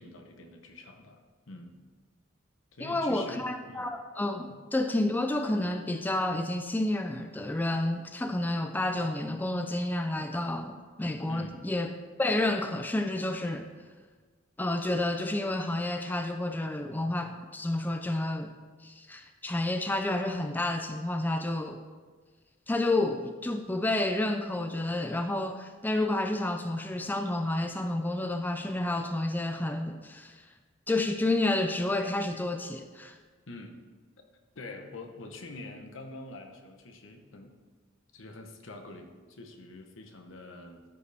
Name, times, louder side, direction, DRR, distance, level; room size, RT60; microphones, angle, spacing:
voice 1, 0.0-1.7 2.7-3.9 11.3-11.7 33.5-33.8 34.5-37.5 38.1-40.8, left 2 dB, 75° left, 4 dB, 1.0 m, -45 dB
voice 2, 2.8-11.9 12.2-13.7 14.6-18.5 18.8-21.8 22.7-30.5 30.9-33.2, left 2 dB, 10° left, 6 dB, 0.3 m, -30 dB
13.5 x 4.9 x 3.4 m, 1.4 s
head